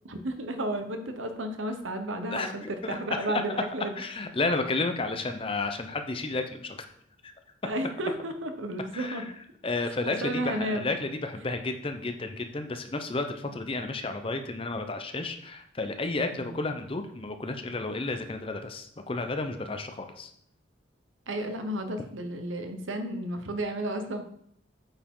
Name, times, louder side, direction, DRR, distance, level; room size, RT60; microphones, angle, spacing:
voice 1, 0.0-4.0 7.6-9.3 10.1-10.9 16.3-16.6 21.3-24.2, right 1 dB, 75° right, 7 dB, 0.9 m, -32 dB
voice 2, 2.3-3.4 4.0-6.8 7.2-7.3 7.6-7.7 8.9-9.3 9.6-20.3, left 3 dB, 25° left, 7 dB, 0.6 m, -32 dB
8.7 x 4.9 x 3.7 m, 0.69 s
head